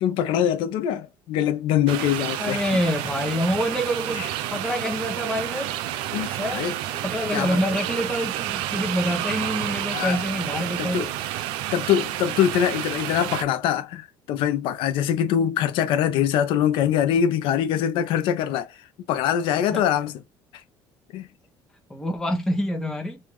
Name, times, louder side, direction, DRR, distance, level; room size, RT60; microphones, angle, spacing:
voice 1, 0.0-2.8 4.2-4.3 6.1-6.7 7.3-7.6 9.9-10.2 10.8-11.1 11.7-18.8 19.1-20.1 21.1-21.3, left 9 dB, 70° left, 0.8 m, -23 dB
sound 1, 1.9-13.4, right 13 dB, 90° right, 0.5 m, -30 dB
voice 2, 2.4-5.7 6.4-6.7 7.0-11.1 19.7-19.8 21.9-23.2, equal, 5° left, 1.1 m, -26 dB
3.6 x 2.6 x 3.1 m
cardioid pair, 155°, 9 cm